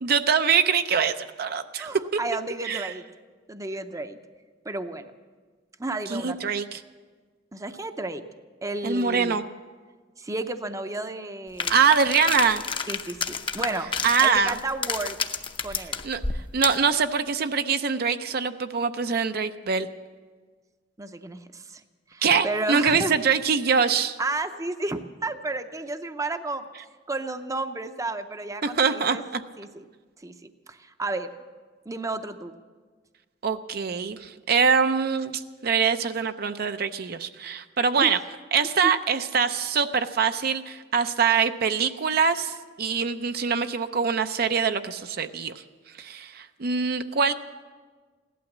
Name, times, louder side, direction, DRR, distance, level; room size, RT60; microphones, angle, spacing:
voice 1, 0.0-2.0 2.6-2.9 6.1-6.8 8.8-9.4 11.7-12.6 14.0-14.6 16.0-16.2 16.5-19.9 22.2-24.2 28.6-29.4 33.4-38.2 38.5-45.6 46.0-47.3, right 6 dB, 55° right, 9 dB, 0.5 m, -24 dB
voice 2, 1.8-3.0 3.5-4.2 4.6-5.1 5.8-6.5 7.5-8.2 8.6-9.4 10.2-11.8 12.9-13.9 14.2-15.2 15.6-16.0 21.0-21.8 22.1-23.2 24.2-26.7 27.1-29.2 29.6-29.8 30.2-31.3 31.9-32.5 38.0-38.1 38.8-38.9, right 2 dB, 20° right, 9 dB, 0.6 m, -32 dB
sound 1, 11.6-16.9, left 5 dB, 30° left, 0.7 m, -30 dB
16.5 x 12.0 x 7.2 m, 1.5 s
head